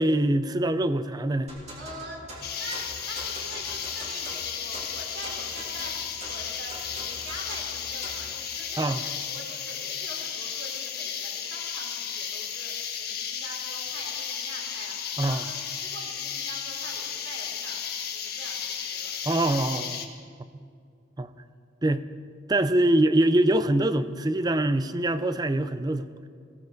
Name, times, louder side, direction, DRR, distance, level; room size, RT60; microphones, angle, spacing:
voice 1, 0.0-1.5 8.8-9.0 15.2-15.4 19.2-20.1 21.2-21.3 21.8-22.0 22.5-26.1, right 1 dB, 20° right, 12 dB, 0.5 m, -24 dB
sound 1, 1.5-8.3, right 1 dB, 35° right, 3.4 m, -43 dB
voice 2, 1.8-12.7 13.0-17.8 18.1-19.2, right 1 dB, 70° right, -1 dB, 4.0 m, -44 dB
sound 2, 2.4-20.1, left 7 dB, 55° left, 1.4 m, -34 dB
21.5 x 16.5 x 4.0 m, 2.3 s
head